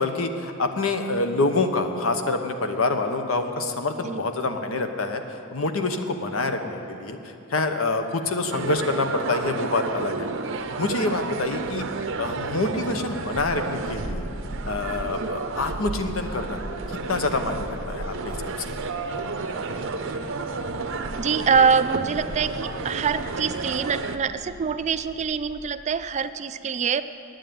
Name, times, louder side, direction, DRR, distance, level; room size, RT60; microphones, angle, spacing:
voice 1, 0.0-10.3 10.8-11.8 12.2-14.3 14.6-16.6 16.9-18.5, left 3 dB, 80° left, 7 dB, 0.9 m, -26 dB
sound 1, 8.5-24.2, right 4 dB, 65° right, 0.6 m, -31 dB
sound 2, 11.7-25.6, left 3 dB, 50° left, 0.9 m, -42 dB
voice 2, 21.2-27.0, right 6 dB, 35° right, 12 dB, 0.3 m, -24 dB
9.1 x 9.1 x 9.1 m, 2.8 s
head